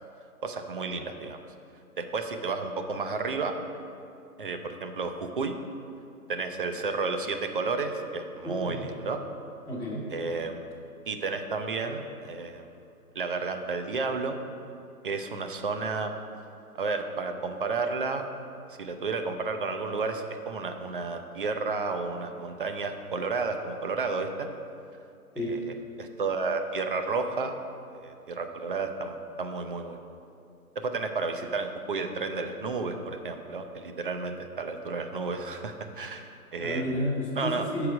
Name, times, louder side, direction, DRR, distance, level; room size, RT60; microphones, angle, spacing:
voice 1, 0.4-1.4 2.0-3.5 4.4-5.6 6.3-9.2 10.1-10.6 11.1-12.7 13.2-14.4 15.0-16.1 16.7-18.2 18.8-24.5 25.4-27.5 27.9-30.0 30.8-36.9 37.4-37.7, right 4 dB, 40° right, 6 dB, 0.4 m, -32 dB
voice 2, 8.4-8.9 9.7-10.1 25.3-25.6 36.6-37.9, equal, ahead, -12 dB, 0.6 m, -31 dB
7.4 x 4.8 x 4.9 m, 2.5 s
figure-of-eight pair, 135°, 45 cm